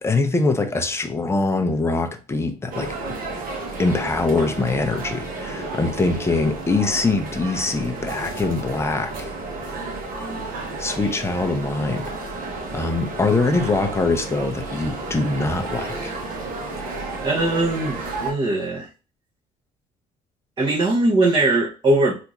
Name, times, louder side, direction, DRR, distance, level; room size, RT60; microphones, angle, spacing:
voice 1, 0.0-3.0 3.8-9.3 10.8-12.2 12.7-16.2, left 3 dB, 15° left, 0.6 m, -23 dB
sound 1, 2.7-18.3, right 3 dB, 55° right, 1.0 m, -32 dB
voice 2, 17.2-18.9 20.6-22.2, right 2 dB, 30° right, 0.8 m, -20 dB
3.4 x 2.5 x 3.0 m
cardioid pair, 110°, 17 cm